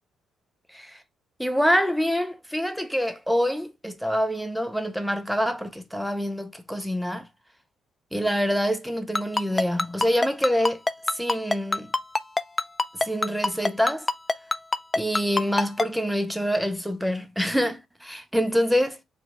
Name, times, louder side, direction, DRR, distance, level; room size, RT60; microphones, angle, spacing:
voice 1, 1.4-7.3 8.1-10.8 11.1-11.9 12.9-14.1 14.9-19.0, equal, ahead, 0.7 m, -26 dB
Ringtone, 9.2-15.9, left 2 dB, 20° left, 0.3 m, -23 dB
4.5 x 2.4 x 2.8 m
cardioid pair, 90°, 0 cm